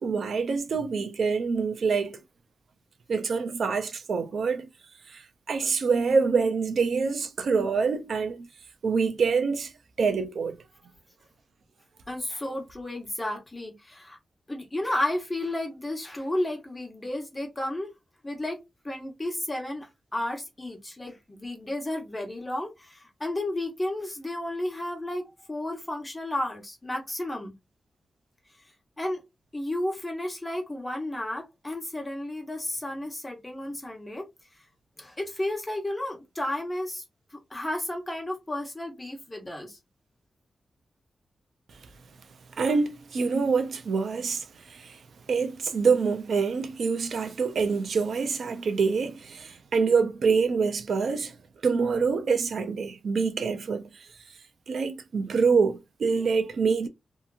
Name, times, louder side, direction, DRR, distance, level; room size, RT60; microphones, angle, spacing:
voice 1, 0.0-2.2 3.1-4.7 5.5-8.5 8.8-9.7 10.0-10.5 42.6-44.4 45.3-51.3 51.6-53.9 54.7-56.9, right 5 dB, 70° right, 0.4 m, -25 dB
voice 2, 12.1-14.2 14.5-17.9 18.2-27.6 29.0-29.2 29.5-34.3 35.0-37.0 37.3-39.8, left 1 dB, 15° left, 1.1 m, -32 dB
2.8 x 2.5 x 2.4 m
wide cardioid pair, 125°, 0 cm